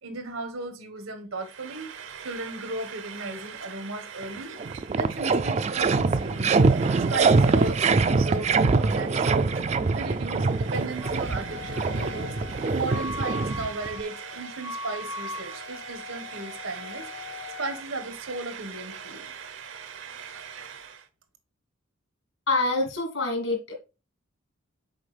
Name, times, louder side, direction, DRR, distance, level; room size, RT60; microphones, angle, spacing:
voice 1, 0.0-1.9 2.2-4.5 5.0-6.6 7.1-9.5 9.9-12.3 12.7-17.1 17.6-19.3, right 2 dB, 90° right, 1.5 m, -36 dB
Frying (food), 1.3-21.1, right 7 dB, 65° right, 0.7 m, -42 dB
sound 1, 4.2-4.3 4.6-14.0, right 4 dB, 30° right, 0.3 m, -24 dB
Wind instrument woodwind instrument, 11.0-17.8, left 3 dB, 55° left, 0.7 m, -40 dB
voice 2, 22.5-23.7, left 2 dB, 75° left, 2.3 m, -26 dB
6.4 x 4.7 x 3.3 m
head